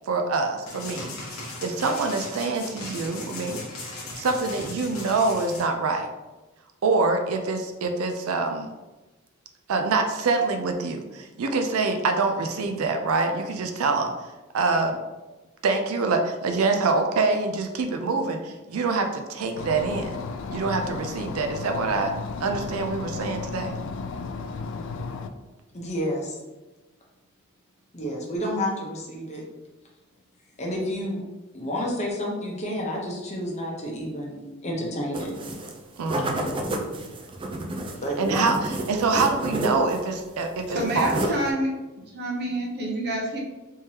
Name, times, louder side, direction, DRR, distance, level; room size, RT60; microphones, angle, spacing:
voice 1, 0.1-6.1 6.8-8.7 9.7-14.1 14.5-15.0 15.6-20.2 20.5-22.1 22.4-23.7 36.0-36.5 38.2-41.1, right 3 dB, 85° right, 5 dB, 0.4 m, -25 dB
sound 1, 0.7-5.6, left 2 dB, 85° left, 1.0 m, -38 dB
sound 2, 19.6-25.3, left 4 dB, 60° left, 0.3 m, -34 dB
voice 2, 25.7-26.4 27.9-29.4 30.6-31.2 31.5-35.3 37.9-38.5, equal, 35° left, -2 dB, 0.8 m, -30 dB
sound 3, 35.1-35.8 36.1-40.1 40.3-41.5, right 1 dB, 25° right, 0.4 m, -30 dB
voice 3, 40.7-41.7 42.1-43.4, right 1 dB, 50° right, -1 dB, 0.8 m, -28 dB
3.6 x 3.1 x 2.8 m, 1.1 s
head